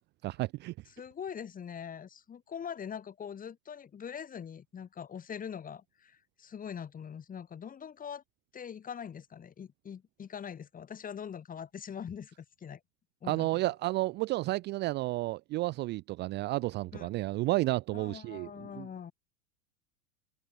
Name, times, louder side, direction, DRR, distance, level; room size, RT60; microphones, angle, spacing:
voice 1, 0.2-0.7 13.3-18.9, right 19 dB, 35° right, 0.4 m, -32 dB
voice 2, 0.9-8.2 8.5-12.8 13.2-13.7 16.9-17.1 17.9-19.1, left 7 dB, 25° left, 3.3 m, -43 dB
hypercardioid pair, 95°, 31 cm